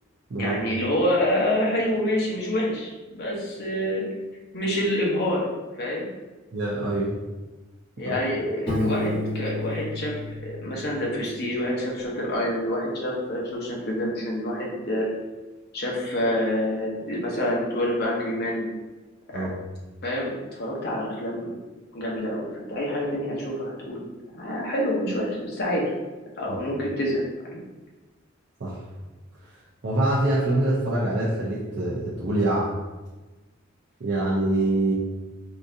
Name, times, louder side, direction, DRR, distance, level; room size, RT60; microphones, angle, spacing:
voice 1, 0.4-4.1 4.5-5.5 5.8-6.1 8.0-10.1 10.4-15.1 15.7-18.7 19.3-19.5 20.0-21.5 21.9-24.0 24.3-25.8 26.4-27.6, left 1 dB, 55° left, -3 dB, 0.8 m, -27 dB
voice 2, 6.5-7.1 8.1-8.2 19.3-19.5 26.5-26.6 28.6-28.8 29.8-32.7 34.0-34.9, right 1 dB, 60° right, -7 dB, 0.5 m, -24 dB
Piano, 8.7-11.4, left 2 dB, 25° left, 1.3 m, -30 dB
3.8 x 2.4 x 2.6 m, 1.2 s
head